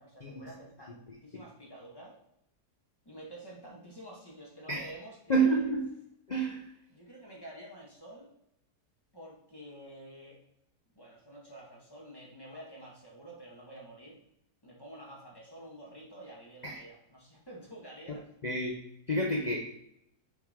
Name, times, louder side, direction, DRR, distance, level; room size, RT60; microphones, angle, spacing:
voice 1, 0.0-2.2 3.0-5.7 6.9-8.3 9.1-10.4 10.9-14.2 14.6-18.3, right 1 dB, 15° left, -4 dB, 1.4 m, -49 dB
voice 2, 5.3-5.9 6.3-6.7 16.6-16.8 18.4-18.8 19.1-19.7, right 3 dB, 80° left, -1 dB, 0.3 m, -29 dB
6.6 x 4.7 x 3.6 m, 0.77 s
omnidirectional pair, 1.8 m